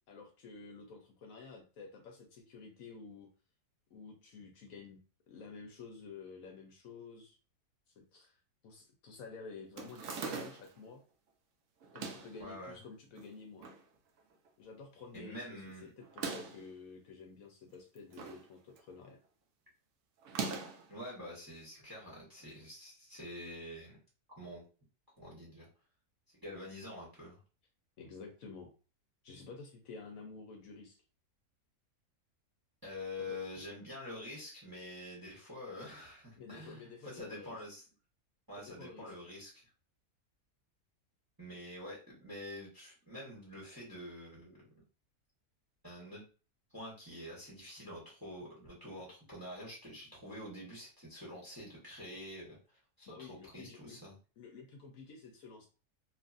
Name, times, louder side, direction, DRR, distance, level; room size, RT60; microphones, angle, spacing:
voice 1, 0.1-3.3 3.9-5.0 5.3-7.3 8.0-8.4 8.6-11.0 11.9-13.7 14.6-19.2 28.0-28.7 29.2-31.0 33.2-33.4 36.4-37.6 38.6-39.1 53.1-54.0 54.4-55.7, left 4 dB, 70° left, 3 dB, 1.0 m, -51 dB
sound 1, 9.8-10.8 11.8-12.4 13.2-13.8 14.2-14.3 14.5-14.6 16.0-16.7 17.7-18.5 18.8-19.1 20.2-20.9, right 5 dB, 70° right, 0.9 m, -41 dB
voice 2, 12.4-12.8 15.1-15.9 20.9-24.0 24.3-24.6 25.2-25.7 26.4-27.4 32.8-37.8 38.5-39.7 41.4-44.7 45.8-46.2 46.7-54.1, left 1 dB, 15° right, -4 dB, 0.9 m, -47 dB
2.9 x 2.4 x 2.4 m, 0.35 s
omnidirectional pair, 1.6 m